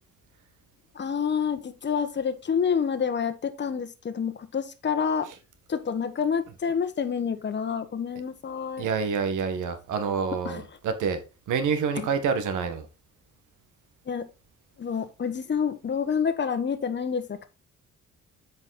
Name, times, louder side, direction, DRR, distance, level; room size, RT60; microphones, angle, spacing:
voice 1, 0.9-5.3 5.7-8.9 10.4-10.6 12.0-12.1 14.1-14.2 14.8-17.4, left 6 dB, 35° left, 1.2 m, -28 dB
voice 2, 8.8-11.2 11.5-12.8, right 6 dB, 80° right, 1.7 m, -27 dB
8.2 x 5.4 x 4.2 m
cardioid pair, 90°, 30 cm